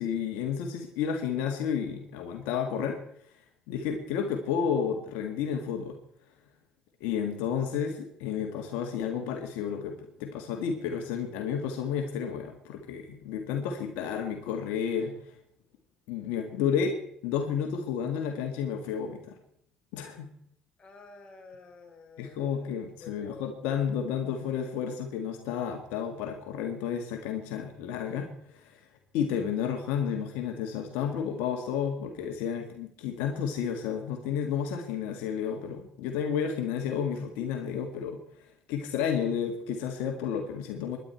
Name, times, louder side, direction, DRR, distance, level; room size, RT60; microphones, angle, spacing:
voice 1, 0.0-3.0 3.7-6.0 7.0-15.4 16.1-19.3 19.9-20.3 22.2-28.8 29.1-41.0, left 7 dB, 80° left, 4 dB, 1.8 m, -31 dB
voice 2, 20.8-23.4, left 3 dB, 35° left, 3 dB, 4.2 m, -51 dB
20.5 x 11.0 x 4.5 m, 0.67 s
supercardioid pair, 75°, 3 cm